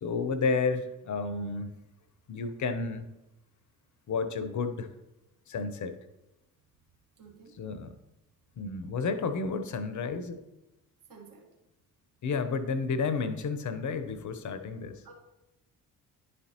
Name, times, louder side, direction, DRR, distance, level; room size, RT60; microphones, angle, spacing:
voice 1, 0.0-1.7 2.3-3.1 4.1-4.9 5.5-6.0 7.6-7.9 8.6-10.4 12.2-15.0, left 4 dB, 40° left, 10 dB, 0.8 m, -31 dB
voice 2, 7.2-7.6 11.1-11.5 15.0-15.1, right 5 dB, 45° right, -1 dB, 1.7 m, -52 dB
11.0 x 4.2 x 2.9 m, 0.97 s
figure-of-eight pair, 45°, 44 cm